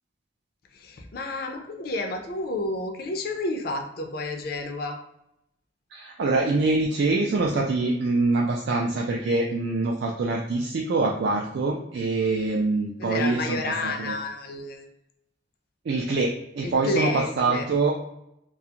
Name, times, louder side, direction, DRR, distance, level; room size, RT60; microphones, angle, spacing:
voice 1, 0.7-5.0 13.0-14.9 16.6-17.7, left 2 dB, 60° left, 4 dB, 0.4 m, -30 dB
voice 2, 5.9-14.1 15.9-17.9, right 3 dB, 70° right, -1 dB, 0.3 m, -25 dB
2.4 x 2.3 x 2.8 m, 0.81 s
head